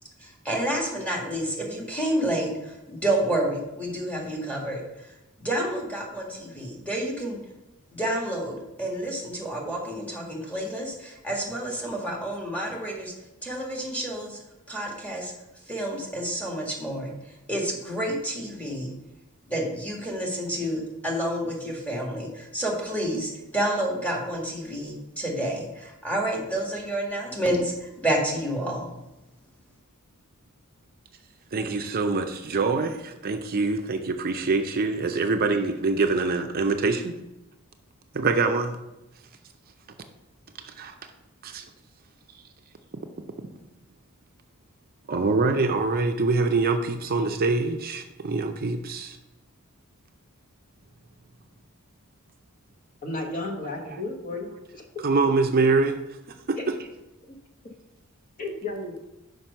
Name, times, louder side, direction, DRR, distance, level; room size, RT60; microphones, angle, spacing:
voice 1, 0.2-5.1 5.4-7.4 7.9-13.1 13.4-14.4 14.7-15.3 15.7-18.9 19.5-28.9, right 1 dB, 5° left, -2 dB, 1.7 m, -29 dB
voice 2, 31.5-37.1 38.1-38.8 40.6-40.9 41.4-41.6 45.1-49.2 53.3-53.4 53.8-54.0 55.0-56.0 56.5-56.6, right 3 dB, 45° right, 6 dB, 0.5 m, -24 dB
voice 3, 53.0-54.8 58.4-59.1, left 2 dB, 40° left, 2 dB, 1.1 m, -33 dB
5.9 x 5.3 x 5.4 m, 0.95 s
head